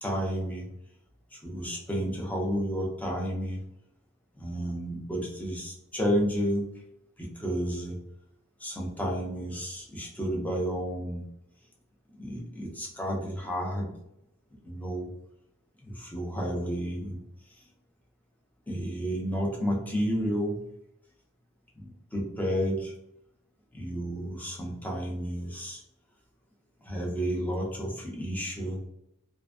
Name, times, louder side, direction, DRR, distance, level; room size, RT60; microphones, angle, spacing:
voice 1, 0.0-0.7 1.3-3.6 4.3-6.7 7.2-8.0 8.6-11.3 12.2-13.9 14.6-15.1 15.8-17.2 17.6-17.7 18.7-20.6 21.8-22.9 23.7-25.8 26.8-28.8, equal, 10° left, -2 dB, 0.5 m, -31 dB
2.4 x 2.3 x 2.3 m, 0.78 s
head